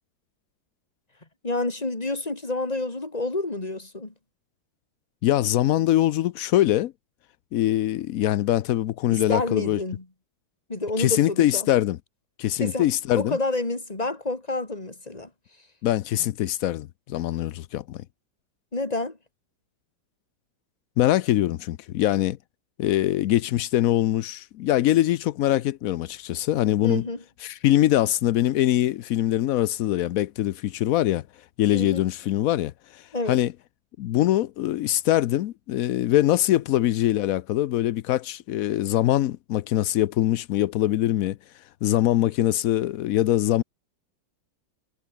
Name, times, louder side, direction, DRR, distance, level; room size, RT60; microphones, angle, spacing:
voice 1, 1.4-4.1 9.1-10.1 10.7-11.7 12.6-12.9 13.1-15.3 18.7-19.2 26.8-27.2 31.7-32.0 33.1-33.4, left 2 dB, 20° left, 2.8 m, -29 dB
voice 2, 5.2-6.9 7.5-9.8 11.0-12.0 12.4-13.4 15.8-18.0 21.0-22.4 22.8-27.0 27.4-31.2 31.6-33.5 34.0-41.4 41.8-43.6, left 13 dB, 80° left, 0.7 m, -23 dB
omnidirectional pair, 2.1 m